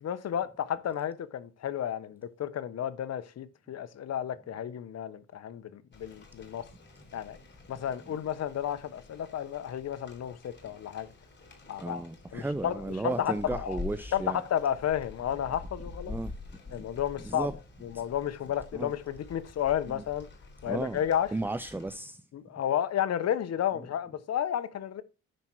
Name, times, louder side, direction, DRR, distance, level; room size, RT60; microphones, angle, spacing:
voice 1, 0.0-6.6 7.1-7.4 7.7-11.1 11.7-12.0 12.3-13.8 14.1-16.2 16.7-17.5 17.8-20.3 20.6-21.3 22.3-25.0, left 10 dB, 55° left, 1.0 m, -32 dB
Rain, 5.9-21.9, left 3 dB, 35° left, 3.5 m, -47 dB
voice 2, 11.8-14.4 16.1-16.3 16.7-16.9 17.2-17.5 18.7-18.9 19.9-20.0 20.6-21.0 21.3-22.2, right 2 dB, 5° right, 0.4 m, -34 dB
9.8 x 4.4 x 6.1 m
cardioid pair, 90°, 30 cm